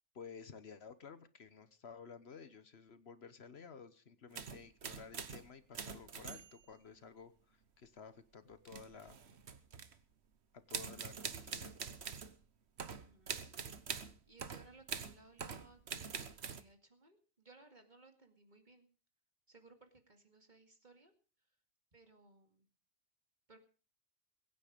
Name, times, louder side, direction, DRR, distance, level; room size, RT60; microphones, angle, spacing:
voice 1, 0.1-9.2 10.5-11.8, left 6 dB, 60° left, 12 dB, 1.3 m, -54 dB
sound 1, 4.3-5.5 5.7-6.7 8.7-10.0 10.7-12.3 12.8-16.6, right 6 dB, 65° right, 1.3 m, -44 dB
voice 2, 13.0-18.9 19.5-21.1 21.9-22.7 23.5-23.6, right 3 dB, 40° right, 5 dB, 2.4 m, -63 dB
21.5 x 9.4 x 5.1 m, 0.38 s
omnidirectional pair, 1.2 m